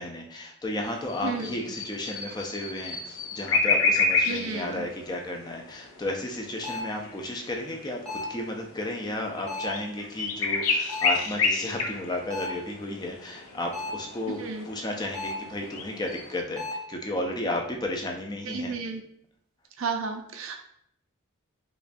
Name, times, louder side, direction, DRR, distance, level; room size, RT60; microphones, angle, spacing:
voice 1, 0.0-18.8, left 1 dB, 20° left, 1 dB, 0.4 m, -33 dB
sound 1, 0.8-16.4, left 4 dB, 80° left, 0.6 m, -31 dB
voice 2, 4.3-4.8 14.4-14.6 18.5-19.0 19.8-20.6, right 4 dB, 75° right, 5 dB, 0.5 m, -32 dB
sound 2, 6.6-7.0 8.1-8.5 9.5-9.9 10.9-11.3 12.3-12.7 13.7-14.1 15.1-15.5 16.6-16.9, left 2 dB, 5° left, 1.0 m, -35 dB
4.9 x 2.3 x 2.5 m, 0.71 s
head